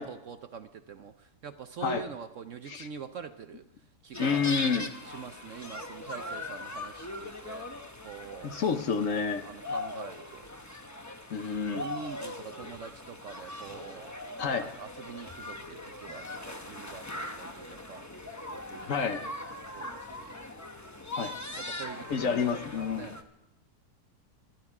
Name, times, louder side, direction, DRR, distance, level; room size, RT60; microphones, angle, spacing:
voice 1, 0.0-3.6 4.0-4.5 5.1-7.7 8.0-8.5 9.4-10.5 11.7-14.1 14.8-18.9 19.7-20.3 21.6-22.5 22.7-23.2, right 6 dB, 60° right, 8 dB, 0.9 m, -44 dB
sound 1, 4.1-23.2, left 2 dB, 15° left, 0.6 m, -40 dB
voice 2, 4.2-4.9 8.4-9.4 11.3-11.8 14.4-14.7 18.9-19.2 21.1-21.3 22.1-23.1, left 5 dB, 55° left, 8 dB, 1.1 m, -29 dB
25.5 x 11.0 x 4.8 m, 0.90 s
omnidirectional pair, 1.8 m